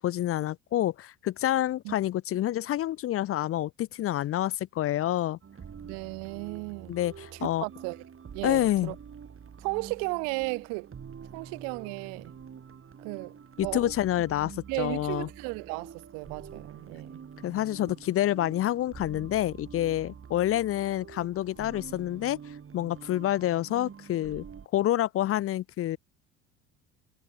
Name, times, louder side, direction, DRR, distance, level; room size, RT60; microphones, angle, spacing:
voice 1, 0.0-5.4 6.9-7.6 8.4-8.9 13.6-15.3 17.4-22.4 22.7-24.4 24.7-26.0, left 13 dB, 35° left, 0.7 m, -28 dB
sound 1, 5.4-24.7, right 7 dB, 30° right, 7.5 m, -46 dB
voice 2, 5.8-6.9 7.3-8.0 8.3-9.0 9.6-10.9 11.3-12.3 13.0-13.9 14.7-17.2, right 40 dB or more, 55° right, 0.8 m, -35 dB
figure-of-eight pair, 60°, 40 cm